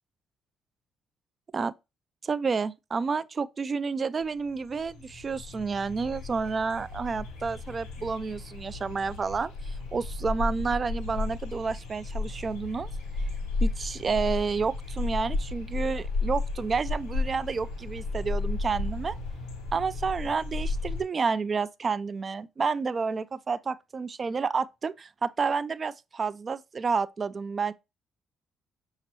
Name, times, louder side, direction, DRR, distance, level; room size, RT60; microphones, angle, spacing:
voice 1, 2.2-12.9 13.6-19.1 19.7-27.7, right 5 dB, 40° right, 0.3 m, -30 dB
sound 1, 4.2-4.3 4.5-21.0, left 3 dB, 85° left, 1.2 m, -33 dB
5.8 x 2.9 x 3.0 m
hypercardioid pair, 50°, 0 cm